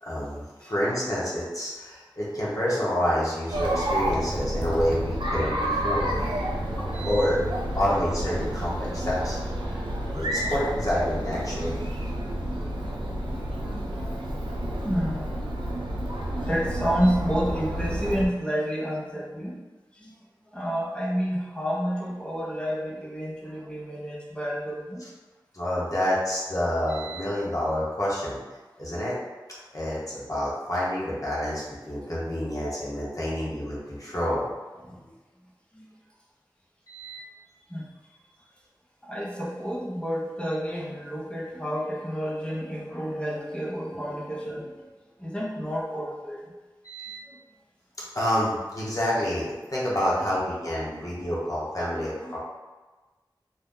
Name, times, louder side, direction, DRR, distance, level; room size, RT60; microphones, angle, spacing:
voice 1, 0.0-6.1 6.9-7.4 7.7-9.4 10.1-11.7 25.5-28.4 28.8-29.1 29.7-34.5 36.9-37.2 46.8-47.2 48.1-52.4, equal, 45° left, -7 dB, 1.0 m, -28 dB
Chatter, 3.5-18.3, right 1 dB, 85° right, 0.5 m, -30 dB
voice 2, 5.9-6.8 9.6-10.0 12.5-14.2 14.8-15.3 16.4-19.6 20.0-20.1 20.5-25.0 34.8-35.0 35.7-35.9 37.7-37.8 39.1-44.8 45.2-46.4 51.0-51.1 52.2-52.3, equal, 10° left, -5 dB, 0.6 m, -30 dB
2.7 x 2.2 x 3.6 m, 1.2 s
wide cardioid pair, 55°, 8 cm